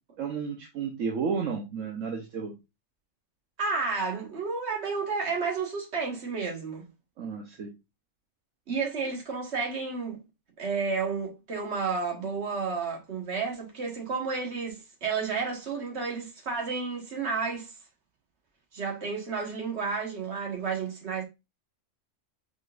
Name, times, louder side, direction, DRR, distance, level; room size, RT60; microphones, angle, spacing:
voice 1, 0.2-2.5 7.2-7.7, right 6 dB, 75° right, 1.2 m, -32 dB
voice 2, 3.6-6.9 8.7-10.2 10.6-17.8 18.7-21.2, right 4 dB, 55° right, 1.7 m, -31 dB
5.0 x 4.2 x 2.4 m
omnidirectional pair, 1.4 m